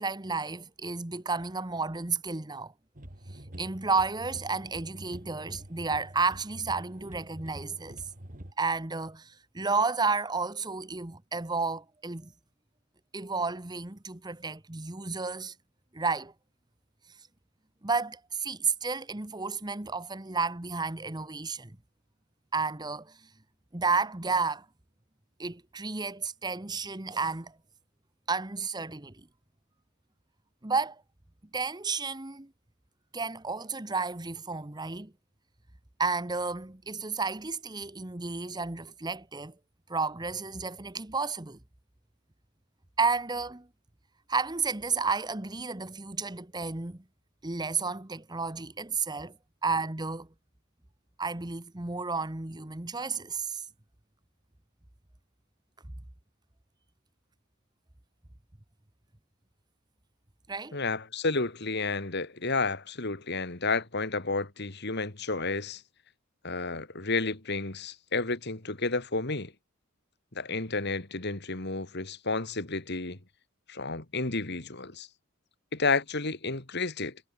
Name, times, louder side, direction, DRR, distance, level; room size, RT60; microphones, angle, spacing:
voice 1, 0.0-2.7 3.6-8.0 8.6-12.3 13.1-15.5 15.9-16.3 17.8-21.7 22.5-23.2 23.7-24.6 25.4-27.6 28.3-29.3 30.6-31.0 31.5-32.5 33.1-35.1 36.0-39.5 39.9-41.6 43.0-43.7 44.3-47.0 47.4-49.3 49.6-50.3 51.2-53.6 60.5-60.8, right 4 dB, 20° right, 1.1 m, -32 dB
sound 1, 3.0-8.5, right 1 dB, 40° right, 2.9 m, -46 dB
voice 2, 60.7-65.8 66.4-69.5 70.3-73.2 73.7-75.1 75.7-77.2, left 3 dB, 55° left, 2.7 m, -31 dB
head